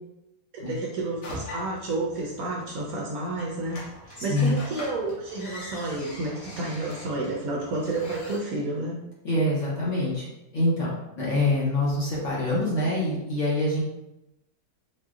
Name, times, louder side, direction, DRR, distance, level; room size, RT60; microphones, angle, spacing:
voice 1, 0.6-9.0, right 2 dB, 70° right, -2 dB, 0.9 m, -30 dB
sound 1, 1.2-8.4, left 1 dB, 75° left, 1.5 m, -42 dB
voice 2, 4.2-4.5 9.2-10.3 10.5-13.8, left 1 dB, 50° left, -6 dB, 1.0 m, -25 dB
3.9 x 2.7 x 2.4 m, 0.91 s
omnidirectional pair, 1.9 m